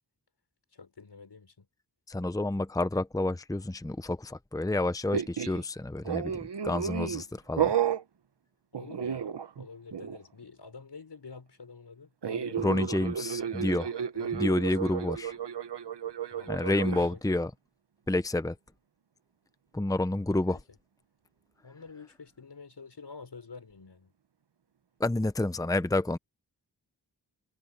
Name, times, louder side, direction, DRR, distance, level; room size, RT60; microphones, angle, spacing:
voice 1, 0.7-1.7 8.7-12.9 14.1-14.7 16.3-17.4 20.3-20.6 21.6-24.1, left 4 dB, 80° left, 5.6 m, -48 dB
voice 2, 2.1-7.7 12.6-13.9 14.3-15.4 16.5-17.5 18.1-18.6 19.7-20.6 25.0-26.2, left 2 dB, 10° left, 0.8 m, -29 dB
sound 1, 5.1-5.6 6.0-7.2 7.6-8.0 8.7-9.7 9.9-10.2 12.2-17.1, right 8 dB, 85° right, 1.0 m, -32 dB
wide cardioid pair, 65°, 40 cm